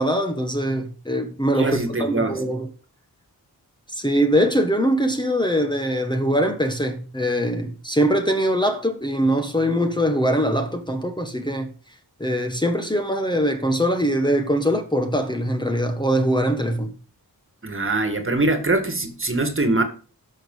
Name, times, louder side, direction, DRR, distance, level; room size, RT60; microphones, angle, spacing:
voice 1, 0.0-2.7 3.9-11.7 12.2-16.9, equal, 10° left, 1.3 m, -22 dB
voice 2, 1.6-2.4 17.6-19.8, right 2 dB, 35° right, 1.9 m, -23 dB
11.5 x 6.3 x 5.5 m
wide cardioid pair, 85°, 36 cm